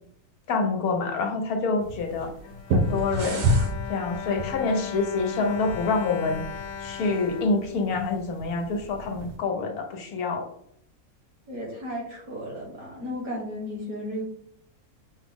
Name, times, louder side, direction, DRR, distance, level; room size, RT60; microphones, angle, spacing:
voice 1, 0.5-2.3 2.7-3.5 3.9-6.4 6.8-10.5, left 3 dB, 85° left, 4 dB, 1.2 m, -27 dB
sound 1, 1.8-9.4, right 1 dB, 90° right, 1.1 m, -31 dB
Bowed string instrument, 2.2-8.4 9.1-9.2 9.5-9.7, left 9 dB, 70° left, 0.9 m, -38 dB
sound 2, 2.8-3.7, right 3 dB, 50° right, 0.6 m, -36 dB
voice 2, 11.5-14.2, equal, 70° right, -2 dB, 2.0 m, -34 dB
5.9 x 2.0 x 3.5 m, 0.69 s
omnidirectional pair, 1.5 m